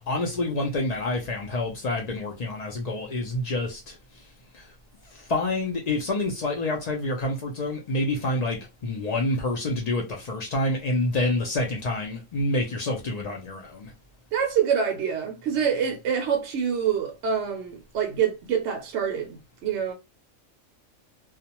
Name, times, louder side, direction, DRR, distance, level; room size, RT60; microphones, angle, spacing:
voice 1, 0.0-4.2 4.5-4.7 5.0-13.9, left 2 dB, 90° left, 0.3 m, -28 dB
voice 2, 14.3-19.9, right 7 dB, 65° right, 0.7 m, -26 dB
2.3 x 2.1 x 2.8 m
omnidirectional pair, 1.4 m